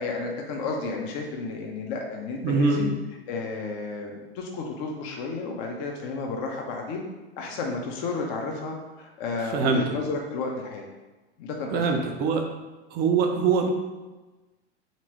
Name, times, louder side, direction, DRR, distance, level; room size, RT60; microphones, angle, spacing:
voice 1, 0.0-2.9 3.3-7.0 7.4-10.8 11.4-12.0, left 3 dB, 40° left, 1 dB, 0.7 m, -32 dB
voice 2, 2.4-2.8 9.5-10.0 11.7-12.4 12.9-13.7, right 5 dB, 30° right, 3 dB, 0.5 m, -23 dB
3.8 x 3.0 x 4.4 m, 1.2 s
figure-of-eight pair, 85°, 33 cm